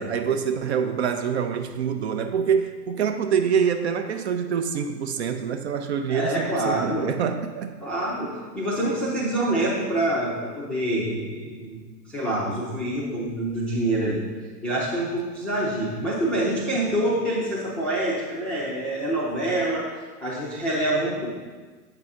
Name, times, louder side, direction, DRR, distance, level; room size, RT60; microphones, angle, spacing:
voice 1, 0.0-7.7, right 7 dB, 45° right, 7 dB, 0.5 m, -25 dB
voice 2, 6.1-7.1 7.8-11.8 12.1-14.2 14.6-19.9 20.2-21.3, right 1 dB, ahead, -8 dB, 0.5 m, -26 dB
7.9 x 5.7 x 3.6 m, 1.4 s
hypercardioid pair, 120°, 49 cm